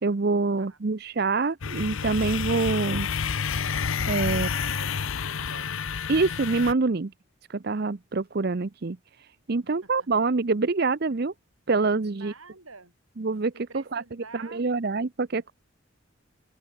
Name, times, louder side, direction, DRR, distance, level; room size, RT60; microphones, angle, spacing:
voice 1, 0.0-3.1 4.1-4.5 6.1-7.1 7.5-11.3 11.7-12.3 13.2-14.0 14.3-15.5, right 3 dB, 45° right, 0.6 m, -26 dB
sound 1, 1.6-6.7, left 6 dB, 70° left, 0.8 m, -29 dB
voice 2, 4.3-5.8 9.7-9.9 12.1-12.9 13.5-14.6, right 3 dB, 80° right, 5.2 m, -48 dB
head